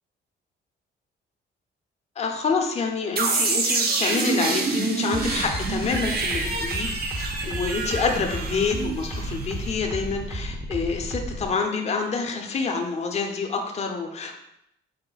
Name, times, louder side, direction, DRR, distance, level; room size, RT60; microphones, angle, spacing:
voice 1, 2.2-14.3, left 4 dB, 35° left, 3 dB, 0.6 m, -27 dB
sound 1, 3.2-9.9, right 4 dB, 50° right, 0.7 m, -27 dB
sound 2, 5.1-11.5, right 1 dB, 15° right, 0.7 m, -33 dB
4.8 x 2.1 x 3.9 m, 0.80 s
cardioid pair, 90°, 20 cm